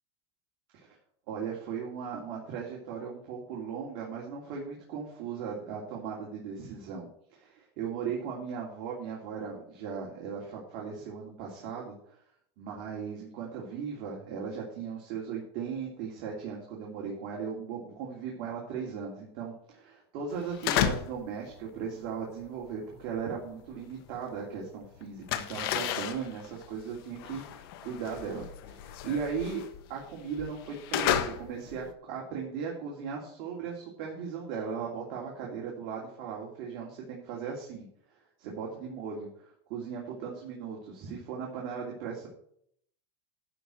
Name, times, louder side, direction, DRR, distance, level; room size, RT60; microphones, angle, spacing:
voice 1, 1.3-12.2 12.6-29.6 29.9-37.9 38.1-42.3, right 6 dB, 50° right, -2 dB, 2.8 m, -37 dB
sound 1, 20.4-21.3 21.5-24.5 24.7-31.9, left 10 dB, 65° left, 1.3 m, -33 dB
11.5 x 4.8 x 7.6 m, 0.67 s
supercardioid pair, 150°, 13 cm